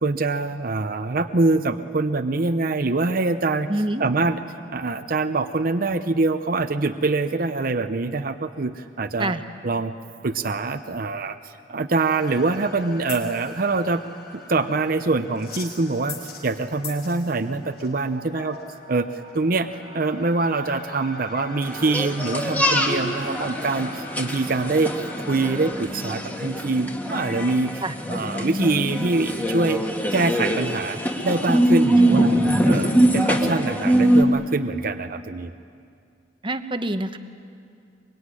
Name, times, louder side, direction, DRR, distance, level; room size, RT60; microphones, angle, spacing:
voice 1, 0.0-3.7 4.0-4.4 4.7-9.3 9.6-9.9 10.2-14.0 14.3-18.6 18.9-19.1 19.3-19.7 19.9-24.9 25.2-27.8 28.1-29.8 30.1-32.4 32.7-35.5, right 3 dB, 50° right, 9 dB, 0.8 m, -24 dB
voice 2, 3.7-4.1 9.2-9.4 27.8-27.9 32.0-32.3 36.4-37.2, right 1 dB, 25° right, 9 dB, 1.0 m, -26 dB
sound 1, 12.0-25.7, left 3 dB, 60° left, 5.7 m, -41 dB
sound 2, 21.6-34.2, right 1 dB, 10° left, 1.9 m, -23 dB
24.0 x 23.0 x 9.8 m, 2.4 s
head